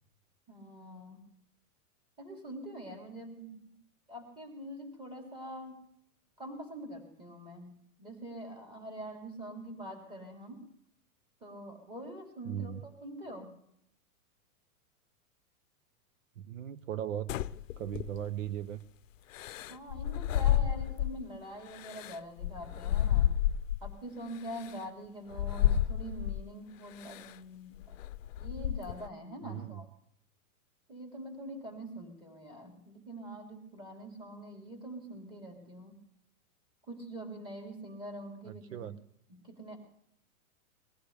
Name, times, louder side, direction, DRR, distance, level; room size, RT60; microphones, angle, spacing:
voice 1, 0.5-1.2 2.2-3.7 4.1-5.8 6.4-10.6 11.4-13.5 19.7-23.3 23.8-28.0 28.4-29.9 30.9-36.0 36.9-38.9 39.3-39.8, right 1 dB, 10° right, 1 dB, 3.7 m, -44 dB
voice 2, 12.4-12.8 16.4-17.3 17.8-18.8 29.4-29.8 38.5-39.0, right 10 dB, 60° right, 13 dB, 0.9 m, -38 dB
sound 1, 17.3-18.5 19.3-21.3 21.7-23.9 24.6-24.7 25.3-26.5 27.0-27.3 27.8-29.1, left 11 dB, 60° left, 0.7 m, -31 dB
21.0 x 15.0 x 3.4 m, 0.71 s
supercardioid pair, 165°, 43 cm